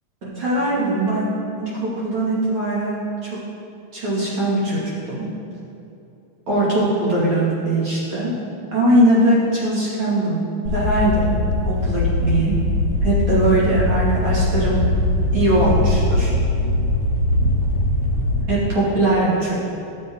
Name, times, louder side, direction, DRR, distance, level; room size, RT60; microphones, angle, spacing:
voice 1, 0.2-1.3 1.6-3.3 3.9-4.8 5.1-5.2 6.5-8.3 8.7-10.4 10.7-11.3 11.7-12.6 13.0-14.8 15.3-16.3 18.5-19.5, right 1 dB, 40° right, -8 dB, 2.6 m, -20 dB
sound 1, 10.7-18.4, left 1 dB, 65° left, 1.7 m, -21 dB
13.5 x 6.9 x 3.7 m, 2.7 s
omnidirectional pair, 4.0 m